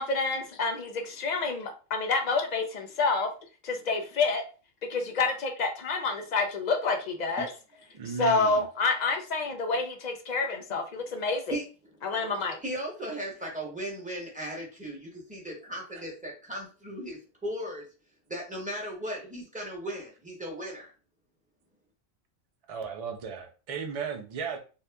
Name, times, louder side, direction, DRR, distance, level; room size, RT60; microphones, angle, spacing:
voice 1, 0.0-3.3 3.6-4.4 4.9-7.5 8.2-11.6 12.0-12.6, left 3 dB, 60° left, 0.4 m, -28 dB
voice 2, 7.9-8.6 22.7-24.6, right 6 dB, 55° right, 0.4 m, -35 dB
voice 3, 12.6-17.9 18.3-20.9, right 1 dB, 5° right, 0.9 m, -37 dB
2.7 x 2.3 x 3.3 m
omnidirectional pair, 1.4 m